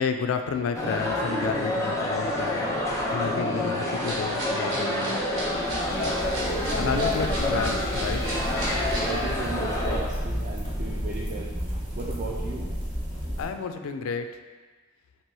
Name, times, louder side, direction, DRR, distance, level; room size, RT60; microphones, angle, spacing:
voice 1, 0.0-5.2 6.7-8.3 13.4-14.4, left 6 dB, 65° left, 7 dB, 0.3 m, -31 dB
sound 1, 0.7-10.0, left 1 dB, 15° left, 0.5 m, -28 dB
sound 2, 4.0-9.1, right 1 dB, 65° right, 1.0 m, -36 dB
sound 3, 5.2-13.5, equal, 20° right, 1.0 m, -32 dB
voice 2, 9.0-11.6 12.0-12.7, right 3 dB, 35° right, -3 dB, 0.3 m, -35 dB
2.9 x 2.9 x 4.6 m, 1.4 s
head